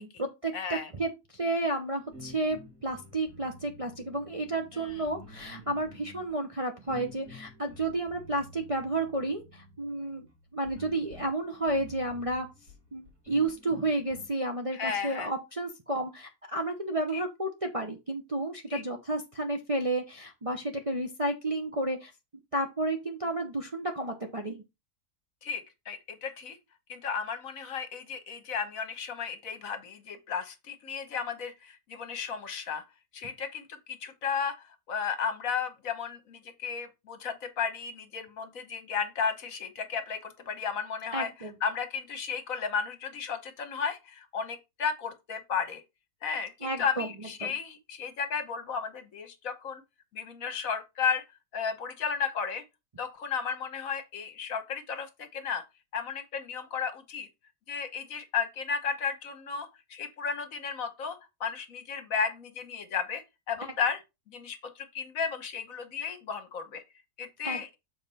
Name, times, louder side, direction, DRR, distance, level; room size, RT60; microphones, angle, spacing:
voice 1, 0.0-10.3 10.5-12.5 12.9-22.1 22.5-24.6 41.1-41.5 46.6-47.1 47.4-47.5 63.6-63.7 67.4-67.6, right 2 dB, 30° right, 0.7 m, -31 dB
voice 2, 0.5-0.9 4.7-5.0 14.7-15.3 17.1-17.2 18.7-18.8 25.4-26.6 26.9-32.8 33.1-41.3 41.6-45.8 46.2-49.8 50.1-51.2 51.5-52.6 53.0-55.6 55.9-57.3 57.7-64.0 64.3-66.8 67.2-67.7, left 6 dB, 60° left, 1.4 m, -34 dB
sound 1, 2.1-14.3, equal, 60° right, 2.5 m, -50 dB
7.3 x 4.4 x 4.1 m
omnidirectional pair, 1.6 m